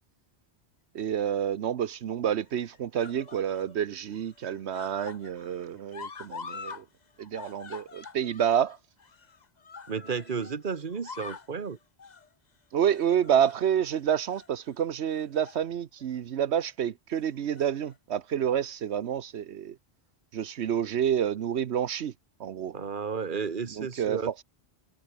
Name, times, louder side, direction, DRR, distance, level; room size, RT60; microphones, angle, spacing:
voice 1, 0.9-6.8 7.2-8.8 12.7-19.8 20.3-22.1 22.4-22.7 23.8-24.4, right 9 dB, 85° right, 1.1 m, -28 dB
sound 1, 1.0-1.6 2.5-3.7 4.1-6.8 7.1-10.6 10.9-11.5 12.0-12.3 12.9-13.9 14.3-14.5 15.1-15.6 16.0-16.2 17.3-17.9 18.8-18.9, left 5 dB, 40° left, 1.2 m, -45 dB
voice 2, 9.9-11.8 22.7-24.3, right 5 dB, 50° right, 1.5 m, -33 dB
omnidirectional pair, 1.1 m